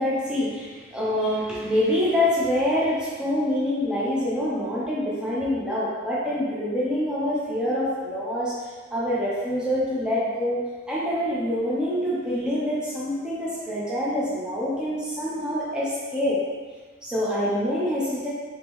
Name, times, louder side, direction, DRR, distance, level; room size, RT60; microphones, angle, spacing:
voice 1, 0.0-8.5 8.9-10.6 10.9-16.4 17.0-18.3, left 1 dB, 5° right, -8 dB, 0.6 m, -26 dB
3.5 x 3.0 x 3.1 m, 1.4 s
head